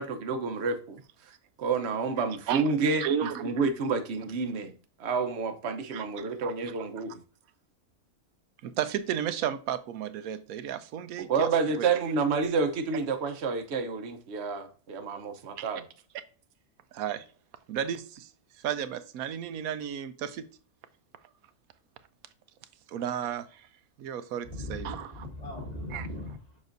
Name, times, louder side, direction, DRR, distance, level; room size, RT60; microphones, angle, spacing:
voice 1, 0.0-4.7 5.0-7.2 11.2-15.8, right 4 dB, 55° right, 1.0 m, -29 dB
voice 2, 3.0-3.4 5.9-6.5 8.6-11.5 11.8-11.9 15.6-15.7 16.9-17.2 17.7-18.3 18.6-20.5 22.9-23.7 24.0-25.2 25.9-26.1, right 9 dB, 85° right, 1.1 m, -33 dB
voice 3, 24.4-26.6, left 1 dB, 30° left, 2.1 m, -39 dB
7.2 x 6.0 x 2.6 m
omnidirectional pair, 1.5 m